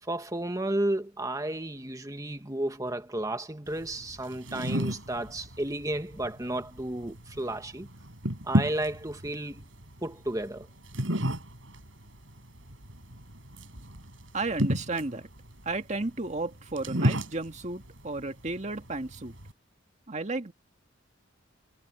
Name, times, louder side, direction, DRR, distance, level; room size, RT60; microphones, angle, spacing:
voice 1, 0.0-7.9 8.4-9.7 10.0-10.7, right 1 dB, 15° right, 1.5 m, -32 dB
sound 1, 3.7-19.5, equal, 75° right, 7.2 m, -34 dB
voice 2, 14.3-15.3 15.7-19.3 20.1-20.5, right 2 dB, 35° right, 1.8 m, -33 dB
head